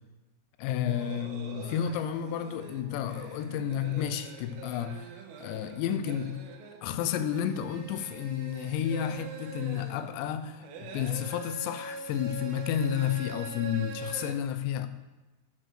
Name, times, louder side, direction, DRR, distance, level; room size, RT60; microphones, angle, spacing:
voice 1, 0.6-5.1 5.4-6.5 6.8-14.9, left 9 dB, 85° left, 2.9 m, -31 dB
sound 1, 0.7-14.3, right 4 dB, 75° right, 2.6 m, -44 dB
12.0 x 5.3 x 6.4 m
omnidirectional pair, 5.0 m